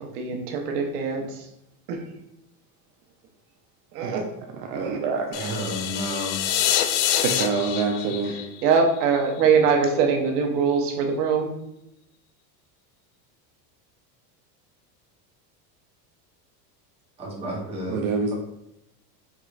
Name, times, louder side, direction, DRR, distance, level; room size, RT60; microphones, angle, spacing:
voice 1, 0.0-1.2 1.9-2.0 3.9-4.2 4.8-5.0 8.6-11.5, right 5 dB, 85° right, 2 dB, 0.9 m, -22 dB
voice 2, 4.6-5.5 7.2-8.3 17.9-18.3, right 4 dB, 65° right, 2 dB, 0.6 m, -26 dB
sound 1, 5.3-9.4, left 11 dB, 75° left, 0.5 m, -26 dB
voice 3, 5.3-6.4 17.2-18.0, equal, 15° right, -4 dB, 0.8 m, -31 dB
4.7 x 3.0 x 2.4 m, 0.83 s
supercardioid pair, 155°, 47 cm